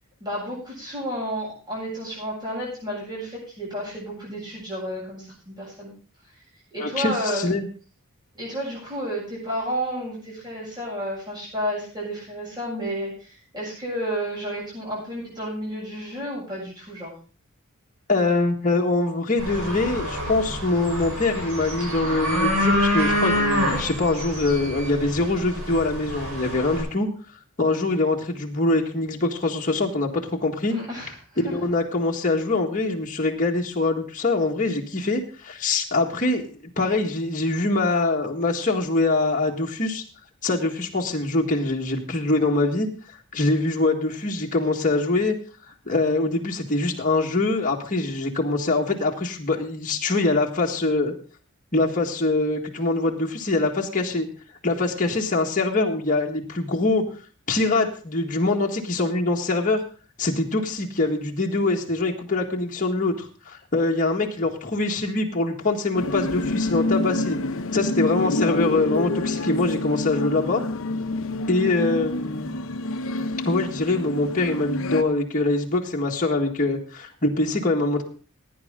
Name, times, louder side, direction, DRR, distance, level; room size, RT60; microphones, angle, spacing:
voice 1, 0.2-5.9 6.7-7.5 8.3-17.1 30.7-31.1 31.4-31.5, equal, 20° right, -7 dB, 7.9 m, -31 dB
voice 2, 6.8-7.7 18.1-27.1 27.6-30.8 31.5-40.0 40.4-42.9 43.3-45.4 45.9-51.1 51.7-54.3 54.6-57.1 57.5-59.8 60.2-67.4 67.7-70.6 71.5-72.6 73.5-78.0, left 2 dB, 35° left, 0 dB, 1.8 m, -24 dB
sound 1, 19.4-26.8, equal, 80° right, 6.3 m, -26 dB
sound 2, 65.9-75.0, left 2 dB, 65° left, 0.9 m, -27 dB
16.5 x 9.8 x 3.8 m, 0.38 s
head